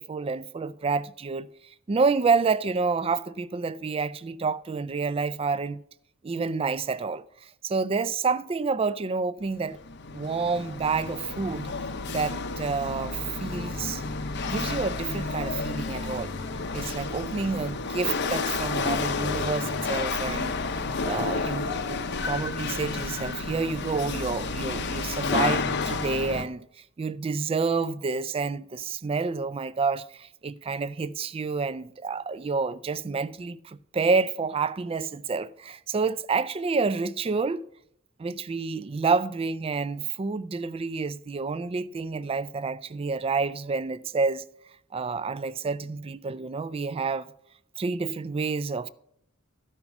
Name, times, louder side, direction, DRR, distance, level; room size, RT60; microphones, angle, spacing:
voice 1, 0.0-1.5 1.9-5.8 6.2-9.8 10.1-11.7 12.1-14.0 14.4-16.3 16.7-20.5 21.0-22.0 22.2-26.7 27.0-37.6 38.2-44.4 44.9-47.3 47.8-48.9, right 4 dB, 25° right, 0.3 m, -29 dB
Chatter / Hiss / Rattle, 9.5-26.4, left 4 dB, 55° left, 0.7 m, -31 dB
13.0 x 5.6 x 5.8 m
head